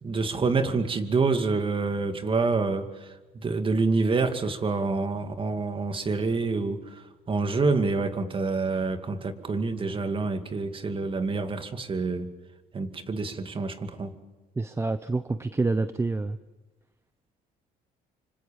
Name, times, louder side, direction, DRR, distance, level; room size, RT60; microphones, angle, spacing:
voice 1, 0.0-12.3 12.7-14.1, right 4 dB, 30° right, 2.3 m, -27 dB
voice 2, 14.6-16.4, right 3 dB, 15° right, 0.8 m, -27 dB
26.0 x 25.5 x 7.1 m
cardioid pair, 110°, 17 cm